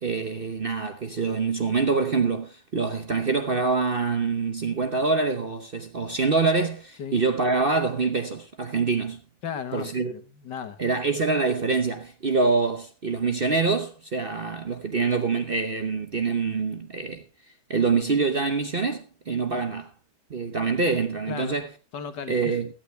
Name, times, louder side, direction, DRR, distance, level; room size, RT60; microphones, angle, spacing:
voice 1, 0.0-9.2 9.7-10.1 10.8-17.2 17.7-19.9 20.3-21.7 22.3-22.7, right 4 dB, 45° right, 0.7 m, -25 dB
voice 2, 9.4-10.8 21.3-21.6 21.9-22.6, left 7 dB, 60° left, 1.9 m, -35 dB
16.5 x 12.0 x 3.3 m
omnidirectional pair, 2.2 m